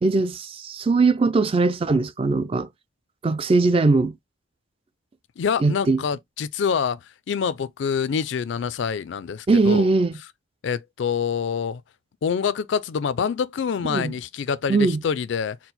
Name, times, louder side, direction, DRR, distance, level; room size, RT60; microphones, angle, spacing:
voice 1, 0.0-2.7 3.2-4.1 5.6-6.0 9.5-10.1 13.9-14.1 14.7-15.0, right 3 dB, 30° right, 0.3 m, -20 dB
voice 2, 5.4-9.9 10.6-11.8 12.2-15.6, left 6 dB, 65° left, 0.3 m, -26 dB
4.4 x 2.0 x 4.0 m
head